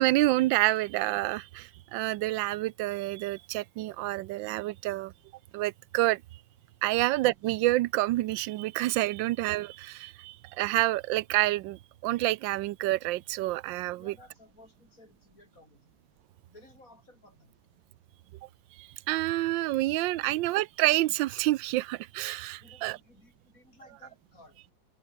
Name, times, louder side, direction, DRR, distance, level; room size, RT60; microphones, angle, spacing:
voice 1, 0.0-5.1 5.5-6.2 6.8-14.1 18.8-23.0, right 17 dB, 90° right, 1.3 m, -28 dB
voice 2, 13.6-15.9 16.5-17.6 20.3-20.5 22.6-24.6, left 2 dB, 45° left, 6.8 m, -57 dB
omnidirectional pair, 2.0 m